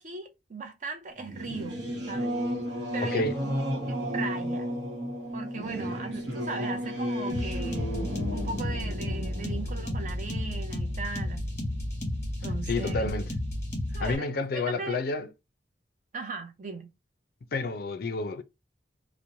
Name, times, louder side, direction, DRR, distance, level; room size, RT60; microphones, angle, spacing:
voice 1, 0.0-2.3 2.9-3.5 3.9-4.7 5.3-7.9 8.3-11.4 12.4-13.2 13.9-15.0 16.1-16.9, right 4 dB, 40° right, 0.5 m, -38 dB
Singing / Musical instrument, 1.2-11.3, equal, 70° right, 0.9 m, -33 dB
voice 2, 3.0-3.4 12.7-13.3 14.0-15.3 17.5-18.4, left 3 dB, 50° left, 0.4 m, -29 dB
sound 1, 7.3-14.2, left 1 dB, 15° left, 1.1 m, -32 dB
2.9 x 2.0 x 2.5 m
head